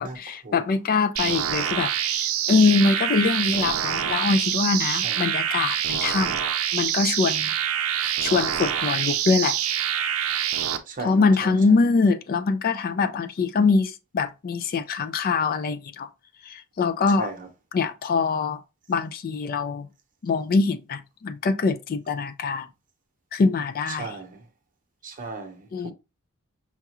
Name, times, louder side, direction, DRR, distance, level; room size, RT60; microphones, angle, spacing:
voice 1, 0.0-6.3 6.7-7.5 8.2-9.6 11.0-16.1 16.5-17.3 17.7-18.6 18.9-19.9 20.2-22.7 23.3-24.1 25.7-25.9, left 4 dB, 45° left, 0.4 m, -23 dB
sound 1, 1.2-10.8, right 9 dB, 75° right, 0.5 m, -26 dB
voice 2, 10.9-11.8 17.1-17.5 23.9-24.5 25.0-25.9, right 4 dB, 40° right, 0.8 m, -37 dB
5.7 x 2.3 x 2.9 m
head